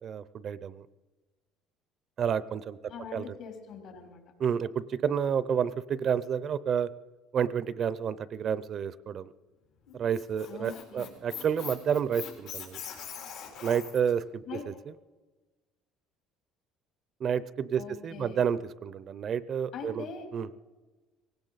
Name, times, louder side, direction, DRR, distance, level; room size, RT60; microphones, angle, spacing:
voice 1, 0.0-0.9 2.2-2.8 3.1-3.3 4.4-6.9 7.3-9.3 9.9-12.8 13.6-14.7 17.2-20.5, right 8 dB, 45° right, 17 dB, 0.5 m, -30 dB
voice 2, 2.9-4.2 10.5-11.1 14.5-14.7 17.8-18.4 19.7-20.3, left 5 dB, 65° left, 2 dB, 3.6 m, -42 dB
Squeak, 9.9-14.1, left 8 dB, 80° left, 4.1 m, -42 dB
19.0 x 17.0 x 4.0 m, 1.3 s
cardioid pair, 125°, 0 cm